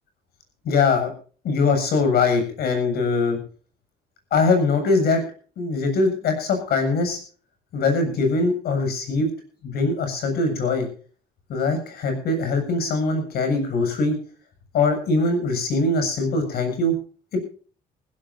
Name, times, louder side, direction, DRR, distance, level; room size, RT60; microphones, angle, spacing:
voice 1, 0.6-1.1 1.4-3.4 4.3-5.2 5.6-7.2 7.7-9.3 9.6-10.9 11.5-14.2 14.7-17.0 17.3-17.4, left 3 dB, 65° left, 7 dB, 7.5 m, -22 dB
21.0 x 16.5 x 2.7 m, 0.39 s
cardioid pair, 110°, 17 cm